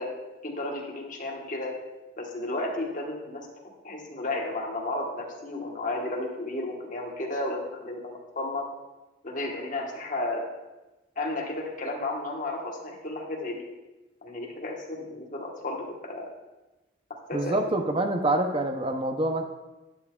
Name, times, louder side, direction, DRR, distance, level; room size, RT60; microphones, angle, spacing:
voice 1, 0.0-1.8 2.2-8.7 9.2-10.5 11.2-13.7 14.2-16.3 17.3-17.6 18.0-18.3, left 2 dB, 40° left, -1 dB, 1.2 m, -33 dB
voice 2, 17.3-19.4, right 1 dB, 25° right, 5 dB, 0.6 m, -26 dB
11.0 x 9.1 x 2.3 m, 1.1 s
head